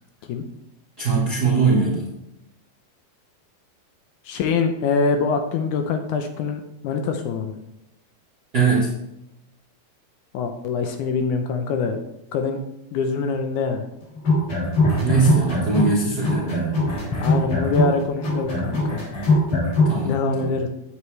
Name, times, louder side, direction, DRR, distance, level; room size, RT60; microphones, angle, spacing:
voice 1, 1.0-2.0 8.5-8.9 15.0-16.8 19.8-20.5, right 4 dB, 55° right, -5 dB, 1.0 m, -21 dB
voice 2, 4.3-7.6 10.3-12.0 12.3-12.6 12.9-13.9 17.1-19.0 20.0-20.7, left 4 dB, 80° left, 6 dB, 1.8 m, -24 dB
sound 1, 14.2-16.0 16.2-20.0, left 2 dB, 55° left, 4.6 m, -21 dB
9.3 x 8.5 x 3.2 m, 0.88 s
omnidirectional pair, 4.3 m